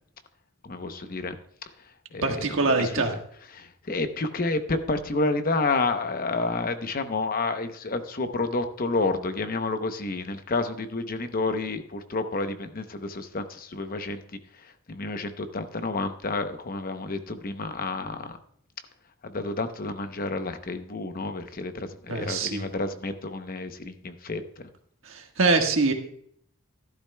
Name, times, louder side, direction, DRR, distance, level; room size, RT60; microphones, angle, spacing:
voice 1, 0.6-1.4 2.1-3.2 3.5-14.2 14.5-18.4 19.2-24.4, left 3 dB, 45° left, 9 dB, 0.8 m, -30 dB
voice 2, 2.2-3.1 22.1-22.7 25.0-25.9, right 3 dB, 70° right, 3 dB, 1.5 m, -24 dB
13.5 x 11.5 x 2.2 m, 0.66 s
head